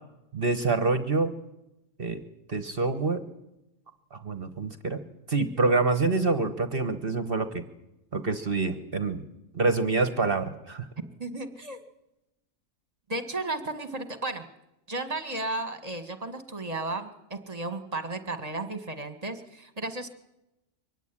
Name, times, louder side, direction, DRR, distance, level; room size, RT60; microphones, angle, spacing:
voice 1, 0.3-1.3 2.0-2.2 2.5-3.2 4.1-5.0 5.3-7.6 8.1-9.2 9.5-10.8, right 3 dB, 45° right, 9 dB, 1.5 m, -26 dB
voice 2, 11.2-11.8 13.1-14.4 14.9-20.1, right 2 dB, 30° right, 8 dB, 2.1 m, -34 dB
24.0 x 16.5 x 10.0 m, 0.89 s
omnidirectional pair, 1.4 m